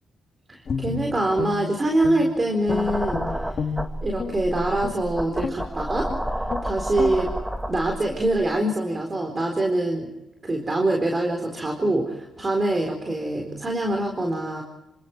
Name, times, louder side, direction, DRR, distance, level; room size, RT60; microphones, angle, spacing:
voice 1, 0.5-3.2 4.0-7.3 7.7-10.1 10.4-14.6, right 1 dB, 30° right, 3 dB, 4.4 m, -24 dB
Guitar, 0.7-2.4 2.7-4.4 4.8-5.0 5.4-5.7 6.1-6.2 6.5-6.7 7.0-7.2, left 5 dB, 50° left, 3.5 m, -30 dB
sound 1, 2.7-8.4, right 1 dB, 10° right, 1.9 m, -30 dB
28.5 x 26.0 x 4.7 m, 0.96 s
cardioid pair, 85°, 0 cm